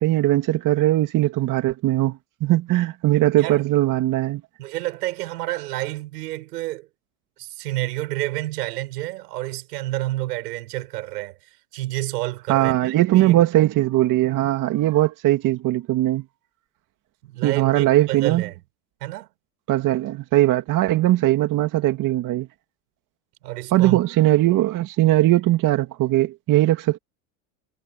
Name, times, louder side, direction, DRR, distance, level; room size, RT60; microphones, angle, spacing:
voice 1, 0.0-4.4 12.5-16.2 17.4-18.4 19.7-22.5 23.7-27.0, right 15 dB, 40° right, 2.4 m, -20 dB
voice 2, 4.6-6.9 7.4-11.4 11.7-13.4 17.2-18.5 19.0-19.3 23.4-24.0, right 17 dB, 85° right, 6.7 m, -29 dB
supercardioid pair, 130°, 47 cm